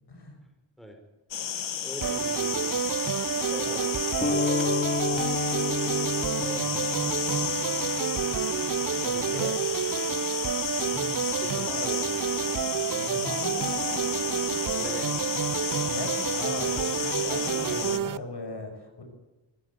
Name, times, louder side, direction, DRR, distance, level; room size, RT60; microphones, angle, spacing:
sound 1, 1.3-18.0, left 8 dB, 85° left, 1.4 m, -32 dB
voice 1, 1.8-2.7 3.5-3.8 4.3-5.4 6.3-7.5 8.9-9.6 11.4-12.0 14.7-15.1, equal, ahead, 4 dB, 5.1 m, -41 dB
sound 2, 2.0-18.2, right 9 dB, 50° right, 0.6 m, -29 dB
sound 3, 4.2-9.4, left 5 dB, 20° left, 3.1 m, -32 dB
voice 2, 9.1-9.4 10.8-11.1 11.5-11.7 13.0-13.6 15.9-19.0, left 2 dB, 65° left, 5 dB, 6.0 m, -38 dB
24.5 x 15.0 x 8.5 m, 1.1 s
wide cardioid pair, 85°, 44 cm